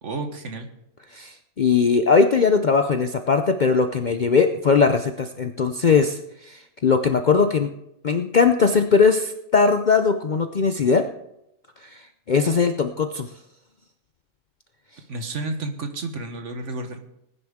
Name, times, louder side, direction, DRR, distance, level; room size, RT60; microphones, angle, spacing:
voice 1, 0.0-0.7 15.1-17.0, right 2 dB, 60° right, 6 dB, 1.6 m, -31 dB
voice 2, 1.1-7.7 8.0-11.0 11.8-13.3, left 5 dB, 50° left, 7 dB, 0.5 m, -20 dB
19.5 x 9.8 x 3.6 m, 0.82 s
omnidirectional pair, 1.4 m